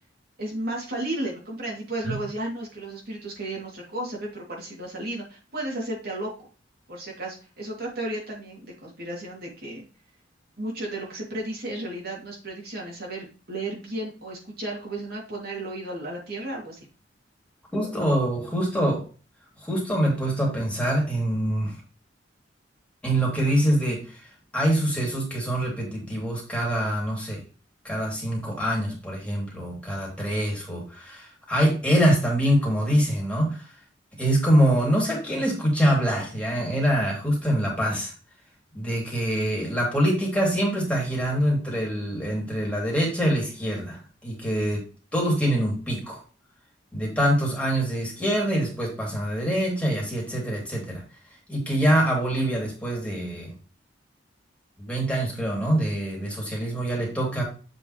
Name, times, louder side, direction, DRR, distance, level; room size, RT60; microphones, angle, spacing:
voice 1, 0.4-6.3 6.9-9.8 10.6-16.9, right 1 dB, 55° right, -2 dB, 2.6 m, -33 dB
voice 2, 17.7-19.0 19.6-21.8 23.0-24.2 24.5-27.4 27.8-33.7 34.2-38.1 38.7-44.8 45.1-46.2 46.9-51.0 51.5-53.5 54.8-57.4, equal, 5° left, -3 dB, 2.8 m, -24 dB
7.5 x 5.4 x 3.1 m, 0.35 s
head